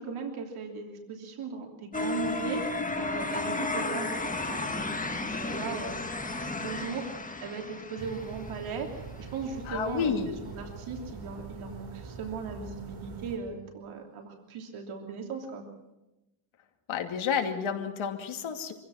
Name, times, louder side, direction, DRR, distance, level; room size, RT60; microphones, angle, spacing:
voice 1, 0.0-6.0 6.3-15.6, right 5 dB, 85° right, 2 dB, 3.2 m, -38 dB
sound 1, 1.9-8.9, left 2 dB, 15° left, 1.7 m, -33 dB
sound 2, 8.0-13.4, right 4 dB, 55° right, 5.2 m, -43 dB
voice 2, 9.7-10.3 16.9-18.7, left 6 dB, 75° left, 4 dB, 2.6 m, -30 dB
25.0 x 16.0 x 6.4 m, 0.96 s
cardioid pair, 125°, 48 cm